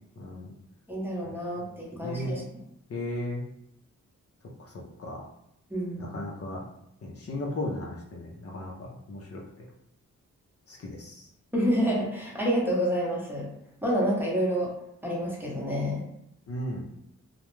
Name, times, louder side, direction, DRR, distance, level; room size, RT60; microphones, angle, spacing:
voice 1, 0.2-0.5 1.6-1.7 2.0-2.4 2.9-3.4 5.0-5.2 6.0-6.6 7.0-9.7 10.7-11.2 16.5-16.8, left 1 dB, 50° left, -2 dB, 0.6 m, -35 dB
voice 2, 0.9-2.4 5.7-6.2 11.5-13.5 13.8-14.7 15.0-16.1, equal, 5° right, -5 dB, 0.8 m, -28 dB
2.3 x 2.1 x 3.1 m, 0.78 s
cardioid pair, 80°, 31 cm